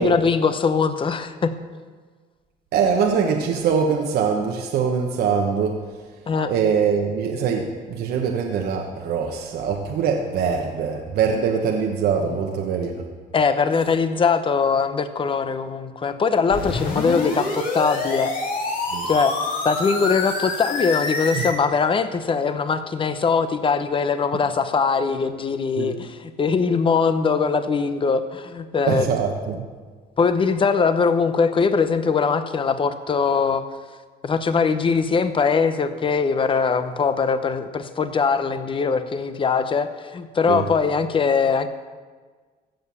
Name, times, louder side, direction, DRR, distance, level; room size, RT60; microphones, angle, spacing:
voice 1, 0.0-1.5 6.3-6.5 13.3-18.3 19.1-19.4 19.6-29.2 30.2-33.7 34.2-41.7, left 5 dB, 30° left, 10 dB, 0.9 m, -21 dB
voice 2, 2.7-5.8 6.5-13.0 18.9-19.1 21.4-21.5 25.8-26.0 28.9-29.6 40.5-40.6, right 6 dB, 70° right, 2 dB, 1.2 m, -23 dB
sound 1, 16.5-21.5, left 3 dB, 55° left, 3.2 m, -27 dB
15.5 x 6.8 x 7.0 m, 1.5 s
cardioid pair, 110°, 17 cm